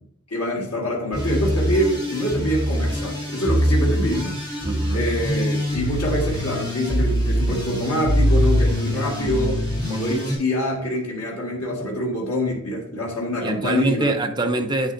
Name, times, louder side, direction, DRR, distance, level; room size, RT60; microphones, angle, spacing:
voice 1, 0.3-4.4 4.9-14.1, equal, 85° left, 1.8 m, -25 dB
sound 1, 1.1-10.3, equal, 20° left, 2.9 m, -23 dB
voice 2, 4.6-5.0 13.4-14.9, right 2 dB, 20° right, 0.7 m, -24 dB
9.2 x 7.8 x 2.6 m
head